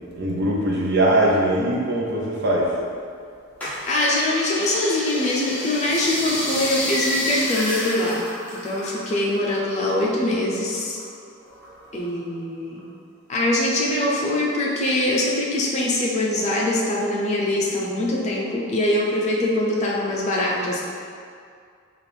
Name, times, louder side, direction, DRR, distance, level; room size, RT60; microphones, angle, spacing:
voice 1, 0.2-2.7, right 1 dB, 50° right, -3 dB, 0.6 m, -21 dB
sound 1, 3.6-9.4 9.7-11.0 11.5-12.3 12.8-12.9, left 1 dB, 5° left, 0.8 m, -29 dB
voice 2, 3.9-8.2 8.5-11.0 11.9-12.8 13.3-20.8, left 1 dB, 35° left, -3 dB, 0.5 m, -23 dB
4.3 x 2.5 x 3.4 m, 2.2 s
head